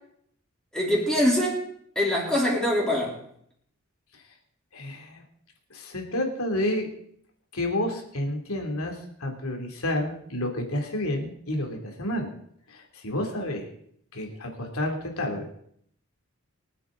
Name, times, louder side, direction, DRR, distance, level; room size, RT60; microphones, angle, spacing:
voice 1, 0.7-1.6 1.9-3.2, left 1 dB, 5° left, -5 dB, 3.3 m, -23 dB
voice 2, 4.7-5.2 5.7-6.9 7.5-12.3 12.7-13.7 14.1-15.5, left 1 dB, 80° left, 2 dB, 2.8 m, -30 dB
24.0 x 8.6 x 3.9 m, 0.67 s
head